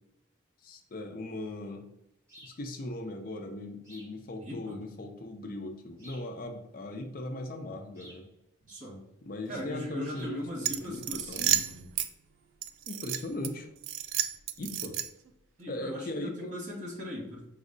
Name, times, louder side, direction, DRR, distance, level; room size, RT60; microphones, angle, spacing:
voice 1, 0.6-1.8 2.4-8.3 9.2-11.5 12.9-13.7 14.6-15.0 15.7-16.6, left 1 dB, 45° left, 5 dB, 0.4 m, -39 dB
sound 1, 2.3-2.6 3.8-4.2 6.0-6.3 7.9-8.3 10.1-10.4, equal, 15° right, 1.3 m, -53 dB
voice 2, 4.4-4.8 8.7-9.0 9.5-11.9 15.6-17.5, equal, 40° right, -3 dB, 1.3 m, -39 dB
sound 2, 10.6-12.1 12.6-13.5 13.8-15.3, right 11 dB, 90° right, 0.4 m, -31 dB
5.2 x 2.0 x 3.7 m, 0.85 s
head